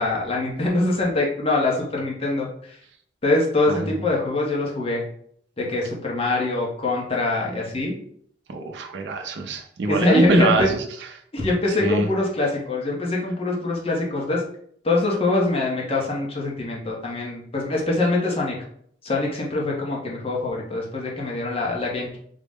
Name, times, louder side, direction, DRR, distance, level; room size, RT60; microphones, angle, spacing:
voice 1, 0.0-2.8 3.2-5.0 5.6-7.9 9.9-10.7 11.3-14.4 14.8-18.5 19.0-22.2, left 2 dB, 35° left, -2 dB, 0.7 m, -23 dB
voice 2, 8.5-10.8 11.8-12.1, right 3 dB, 70° right, 3 dB, 0.4 m, -24 dB
3.8 x 2.0 x 3.4 m, 0.64 s
head